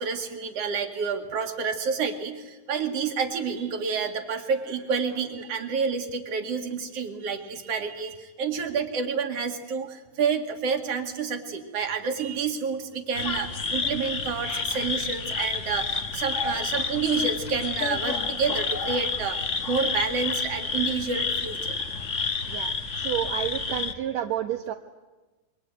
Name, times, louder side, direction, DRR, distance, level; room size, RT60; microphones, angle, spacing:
voice 1, 0.0-21.8, right 5 dB, 50° right, 6 dB, 2.9 m, -29 dB
sound 1, 13.1-23.9, left 4 dB, 45° left, 0.9 m, -29 dB
voice 2, 22.5-24.7, right 11 dB, 65° right, 5 dB, 2.0 m, -30 dB
27.0 x 23.5 x 9.3 m, 1.2 s
omnidirectional pair, 3.9 m